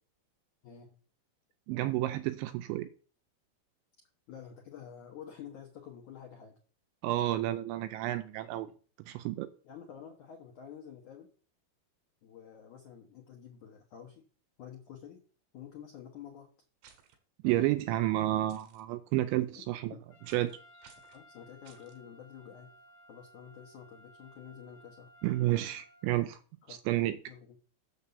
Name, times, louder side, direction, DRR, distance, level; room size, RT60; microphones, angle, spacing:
voice 1, 0.6-1.0 4.3-6.6 9.6-11.3 12.2-14.2 14.6-15.2 15.5-16.5 19.4-19.6 19.9-20.0 21.1-22.7 23.1-25.1 26.6-26.8 27.3-27.6, left 8 dB, 75° left, 1.7 m, -49 dB
voice 2, 1.7-2.9 7.0-8.7 9.1-9.5 17.4-19.9 20.3-20.6 25.2-26.4 26.7-27.2, right 15 dB, 85° right, 2.7 m, -30 dB
sound 1, 16.8-17.2 18.5-18.8 20.3-20.6 20.8-21.2 21.7-22.0, right 7 dB, 70° right, 3.3 m, -58 dB
Trumpet, 20.1-26.2, equal, 50° left, 3.5 m, -58 dB
6.9 x 6.8 x 7.0 m
omnidirectional pair, 5.6 m